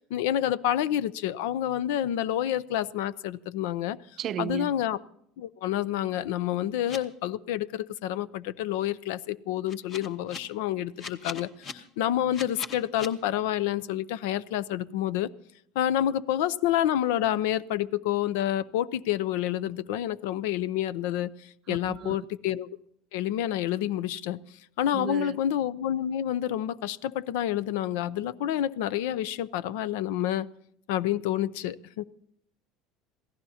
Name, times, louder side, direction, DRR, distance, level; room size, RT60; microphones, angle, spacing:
voice 1, 0.0-4.0 4.4-5.0 5.4-15.3 15.8-22.7 23.1-24.4 24.8-30.5 30.9-32.0, left 11 dB, 85° left, 0.6 m, -28 dB
voice 2, 4.2-4.7 21.7-22.2 24.9-25.4, right 9 dB, 30° right, 0.5 m, -34 dB
sound 1, 6.9-7.0 9.7-10.4 11.0-11.7 12.3-13.1, left 4 dB, 30° left, 1.2 m, -38 dB
27.0 x 17.0 x 2.8 m
cardioid pair, 170°, 0 cm